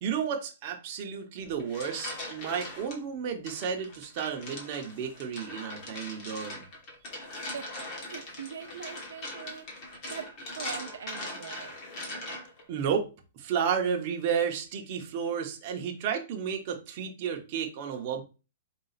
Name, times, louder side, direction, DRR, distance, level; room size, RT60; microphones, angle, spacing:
voice 1, 0.0-6.6 12.7-13.1 13.4-18.2, right 7 dB, 30° right, 0.8 m, -32 dB
sound 1, 1.4-3.0 3.5-12.6, left 1 dB, 30° left, 1.1 m, -41 dB
voice 2, 7.5-11.8, right 7 dB, 75° right, 0.5 m, -42 dB
4.0 x 2.4 x 4.0 m
hypercardioid pair, 170°, 0 cm